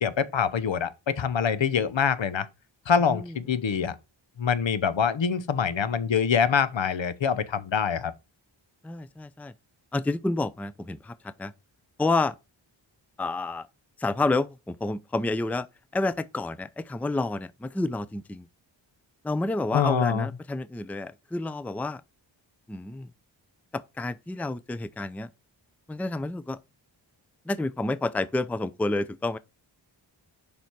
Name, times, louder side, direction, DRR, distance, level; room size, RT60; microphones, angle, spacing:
voice 1, 0.0-2.5 2.9-3.9 4.4-8.1 19.7-20.3, left 7 dB, 70° left, 0.9 m, -25 dB
voice 2, 8.8-9.5 9.9-11.5 12.0-12.3 13.2-13.7 14.0-15.7 15.9-18.4 19.2-22.0 22.7-23.1 23.7-25.3 25.9-26.6 27.5-29.4, left 2 dB, 5° left, 0.5 m, -29 dB
6.9 x 5.3 x 4.6 m
cardioid pair, 50°, 47 cm